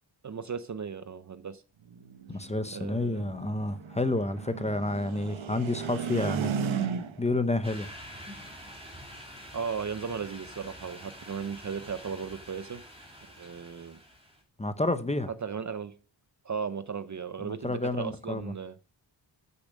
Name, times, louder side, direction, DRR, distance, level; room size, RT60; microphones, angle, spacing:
voice 1, 0.2-1.6 2.3-2.4 2.7-3.3 9.5-12.8 13.4-14.0 15.3-15.9 16.4-18.8, right 6 dB, 40° right, 0.6 m, -36 dB
sound 1, 1.9-7.4, right 7 dB, 75° right, 1.2 m, -35 dB
voice 2, 2.3-7.9 14.6-15.3 17.4-18.4, left 2 dB, 15° left, 0.8 m, -30 dB
sound 2, 7.6-14.4, equal, 10° right, 2.7 m, -47 dB
13.5 x 7.0 x 6.3 m
wide cardioid pair, 175°, 48 cm